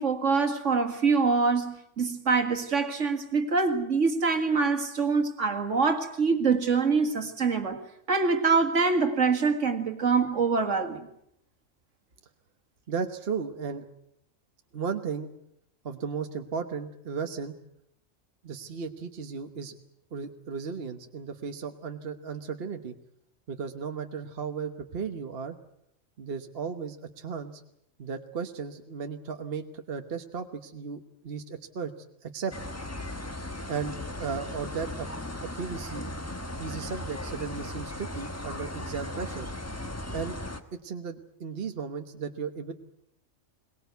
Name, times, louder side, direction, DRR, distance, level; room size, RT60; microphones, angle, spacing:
voice 1, 0.0-7.8 8.1-11.1, right 4 dB, 65° right, 2.2 m, -25 dB
voice 2, 12.9-13.8 14.7-15.3 15.8-17.5 18.4-19.8 20.1-22.9 23.5-25.5 26.2-27.6 28.0-31.9 32.2-32.5 33.7-35.1 35.4-36.1 36.6-39.5 40.1-40.4 40.7-42.7, right 6 dB, 50° right, 1.3 m, -35 dB
sound 1, 32.5-40.6, left 1 dB, 10° left, 1.2 m, -37 dB
22.0 x 20.0 x 8.1 m
omnidirectional pair, 1.3 m